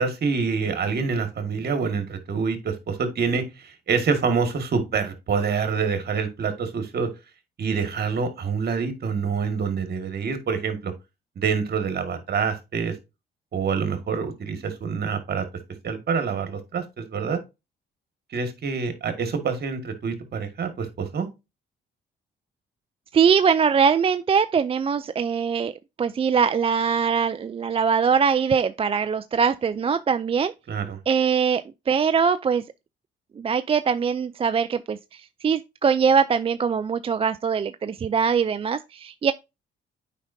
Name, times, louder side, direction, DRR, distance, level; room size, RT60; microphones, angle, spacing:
voice 1, 0.0-7.1 7.6-10.9 11.4-13.0 13.5-15.4 15.8-17.4 18.3-21.3 30.7-31.0, right 5 dB, 55° right, 1.8 m, -26 dB
voice 2, 23.1-25.7 26.0-30.5 31.1-32.6 33.4-39.3, right 6 dB, 30° right, 0.3 m, -22 dB
8.3 x 5.1 x 2.6 m
cardioid pair, 90°, 20 cm